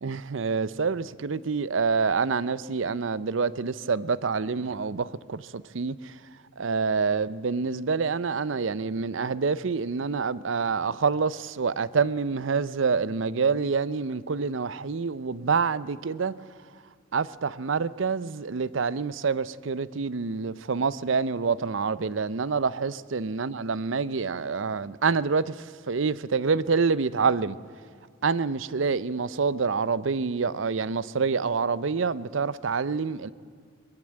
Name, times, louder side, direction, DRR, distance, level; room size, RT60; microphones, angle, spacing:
voice 1, 0.0-6.1 6.6-16.3 17.1-27.6 28.2-33.3, right 5 dB, 70° right, 0.6 m, -27 dB
21.5 x 15.0 x 8.8 m
head